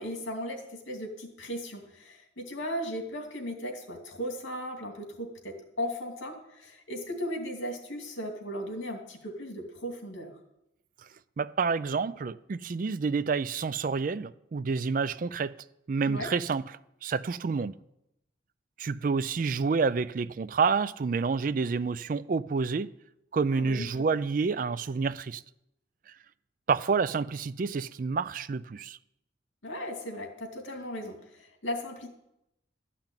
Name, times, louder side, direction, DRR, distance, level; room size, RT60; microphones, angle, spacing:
voice 1, 0.0-10.3 16.1-16.3 23.5-23.9 29.6-32.1, equal, 85° left, 2.6 m, -37 dB
voice 2, 11.4-15.5 15.9-16.6 17.0-17.7 18.8-22.9 23.3-25.4 26.7-29.0, right 5 dB, 45° right, 0.3 m, -28 dB
13.0 x 5.9 x 8.9 m
head